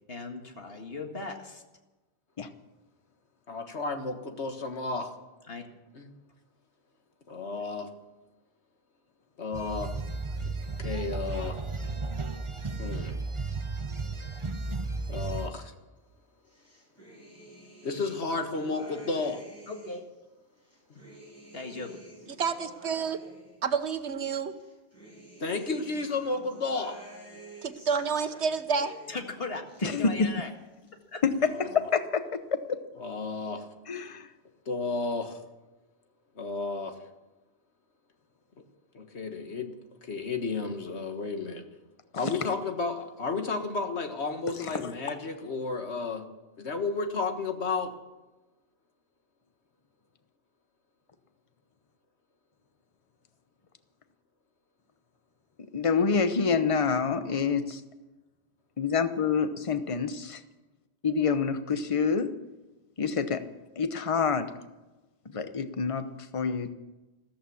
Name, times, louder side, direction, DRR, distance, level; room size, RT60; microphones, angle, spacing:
voice 1, 0.1-1.6 5.5-5.7 19.7-20.1 21.5-22.0 29.1-30.5, left 3 dB, 65° left, 4 dB, 2.1 m, -38 dB
voice 2, 3.5-5.1 5.9-6.1 7.3-7.9 9.4-9.9 10.8-11.6 12.8-13.2 15.1-15.7 17.8-19.4 20.9-21.0 25.4-27.0 31.5-31.7 33.0-33.7 34.7-35.4 36.4-37.0 38.9-39.7 40.0-41.6 42.1-46.2 46.6-47.9, left 3 dB, 80° left, 6 dB, 1.8 m, -32 dB
sound 1, 9.5-15.5, right 3 dB, 30° right, 1.1 m, -34 dB
sound 2, 16.5-20.1 20.6-24.0 24.5-29.3 29.6-30.5 30.7-31.5, right 1 dB, 15° left, 6.4 m, -50 dB
voice 3, 22.4-23.2 23.6-24.5 27.6-29.0, right 5 dB, 85° right, 10 dB, 1.4 m, -29 dB
voice 4, 29.8-30.3 31.2-31.4 31.7-32.8 33.9-34.3 42.2-42.3 44.6-44.8 55.7-57.8 58.8-60.4 61.0-62.3 63.0-63.4 63.8-64.5 65.3-66.7, left 5 dB, 30° left, 10 dB, 0.9 m, -27 dB
14.0 x 14.0 x 7.1 m, 1.1 s
omnidirectional pair, 1.1 m